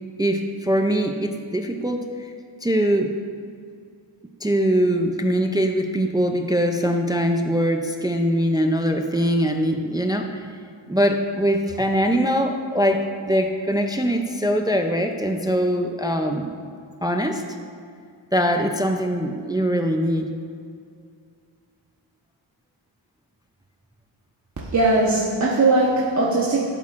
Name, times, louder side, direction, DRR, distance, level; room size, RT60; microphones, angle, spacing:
voice 1, 0.2-2.3 2.6-3.1 4.4-10.5 10.9-16.5 17.0-17.4 18.3-20.3, equal, 10° right, 4 dB, 0.4 m, -22 dB
voice 2, 24.7-26.6, right 2 dB, 35° right, -5 dB, 1.1 m, -19 dB
12.0 x 8.2 x 2.5 m, 2.3 s
wide cardioid pair, 120°, 47 cm